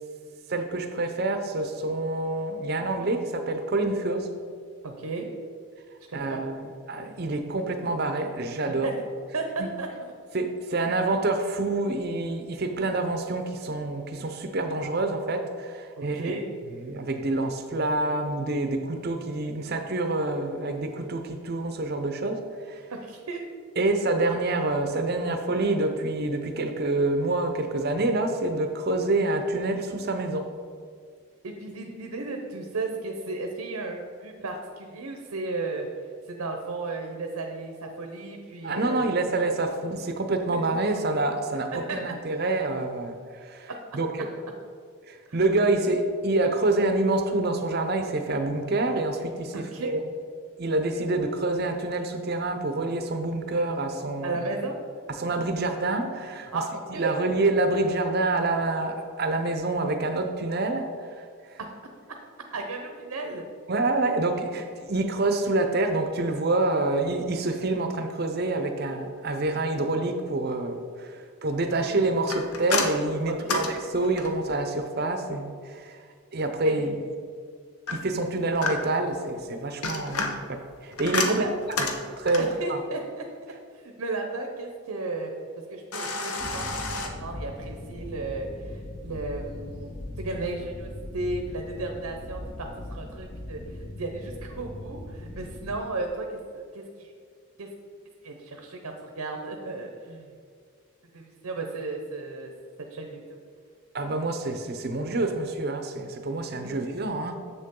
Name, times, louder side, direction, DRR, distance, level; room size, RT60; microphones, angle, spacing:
voice 1, 0.5-4.3 6.1-8.9 9.6-9.7 10.3-16.3 16.8-22.4 22.7-22.8 23.8-30.5 38.6-44.3 45.1-50.0 50.6-54.4 55.1-61.2 61.5-61.6 63.7-76.0 76.3-76.9 77.9-81.4 82.2-82.8 103.9-107.3, right 2 dB, 45° right, 6 dB, 0.6 m, -27 dB
voice 2, 4.8-5.3 6.1-6.4 8.8-9.0 9.3-10.1 16.0-16.4 22.9-23.4 31.4-35.9 36.3-39.2 39.9-40.0 41.7-42.0 43.7-43.8 45.3-45.4 49.5-49.9 54.2-54.8 56.5-56.7 56.9-57.1 62.5-63.4 73.3-73.7 76.6-76.8 81.2-81.5 82.4-83.3 83.7-85.3 85.7-96.3 96.5-97.1 97.6-97.7 98.2-100.3 101.1-102.5 102.9-103.2, right 3 dB, 90° right, 3 dB, 0.8 m, -34 dB
sound 1, 72.3-74.5 77.9-79.1 79.6-82.6 85.9-87.1, left 3 dB, 85° left, 0.9 m, -30 dB
sound 2, 86.4-95.8, left 1 dB, 25° left, 0.4 m, -39 dB
7.2 x 6.7 x 3.7 m, 2.1 s
head